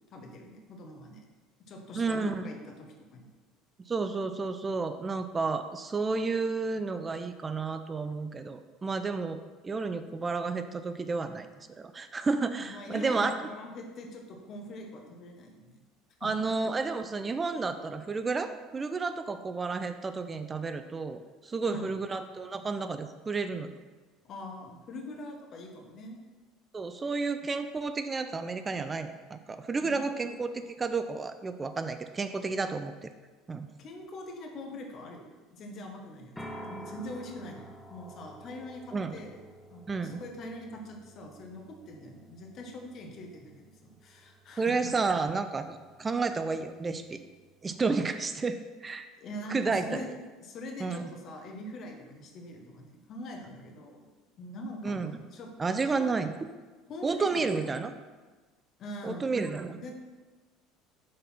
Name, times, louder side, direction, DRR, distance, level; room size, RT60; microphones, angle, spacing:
voice 1, 0.1-1.2 1.7-3.3 12.6-15.8 16.2-16.3 21.7-21.9 24.2-26.2 29.8-30.3 33.8-36.3 36.6-39.4 39.7-44.7 49.2-50.1 50.4-54.1 54.4-55.5 55.9-56.1 56.9-57.4 58.8-59.3 59.8-59.9, left 1 dB, 50° left, 2 dB, 1.3 m, -43 dB
voice 2, 1.9-2.5 3.9-13.5 16.2-23.7 26.7-32.9 33.5-33.7 38.9-39.2 39.9-40.2 44.6-47.2 47.6-49.1 49.5-50.1 50.8-51.1 54.8-55.2 55.6-56.3 57.0-57.9 59.0-59.8, right 4 dB, 25° right, 9 dB, 0.4 m, -31 dB
sound 1, 36.4-48.1, right 1 dB, 5° left, 1.1 m, -51 dB
6.5 x 4.2 x 5.7 m, 1.3 s
hypercardioid pair, 70°, 0 cm